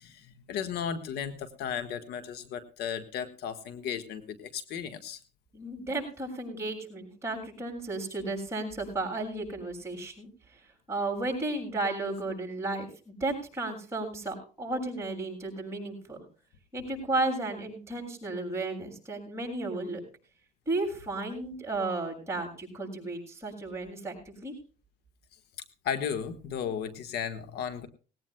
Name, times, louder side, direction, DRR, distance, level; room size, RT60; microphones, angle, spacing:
voice 1, 0.0-5.2 25.8-27.9, left 8 dB, 75° left, 10 dB, 1.5 m, -35 dB
voice 2, 5.5-10.6 10.9-16.2 16.7-20.0 20.7-24.5, right 2 dB, 15° right, 2 dB, 7.2 m, -34 dB
19.5 x 17.0 x 2.2 m, 0.37 s
cardioid pair, 110°, 17 cm